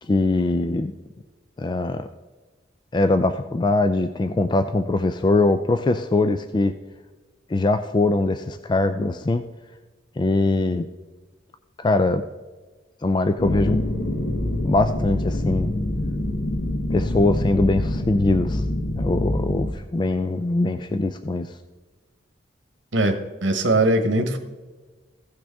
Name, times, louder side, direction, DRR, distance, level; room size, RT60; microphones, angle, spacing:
voice 1, 0.0-0.9 1.6-2.1 2.9-6.7 7.5-9.4 10.2-10.9 11.8-12.2 13.0-13.8 14.6-15.7 16.9-18.7 19.0-21.6, left 2 dB, 25° left, 9 dB, 0.3 m, -22 dB
sound 1, 13.4-19.7, left 1 dB, 55° left, 0.9 m, -25 dB
voice 2, 22.9-24.4, right 2 dB, 80° right, 7 dB, 1.1 m, -21 dB
15.5 x 6.1 x 3.5 m, 1.3 s
head